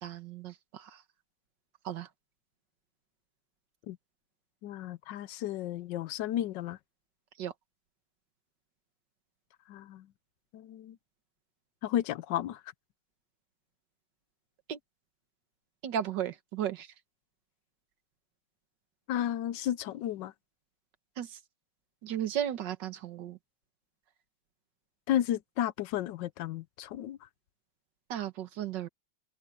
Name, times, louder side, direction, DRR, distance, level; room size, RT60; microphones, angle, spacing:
voice 1, 0.0-1.0 1.8-2.1 7.4-7.5 14.7-14.8 15.8-16.9 21.2-21.4 22.0-23.4 28.1-28.9, right 10 dB, 80° right, 1.8 m, -35 dB
voice 2, 4.6-6.8 9.7-10.1 10.5-11.0 11.8-12.6 19.1-20.3 25.1-27.2, left 11 dB, 80° left, 1.3 m, -33 dB
omnidirectional pair, 1.9 m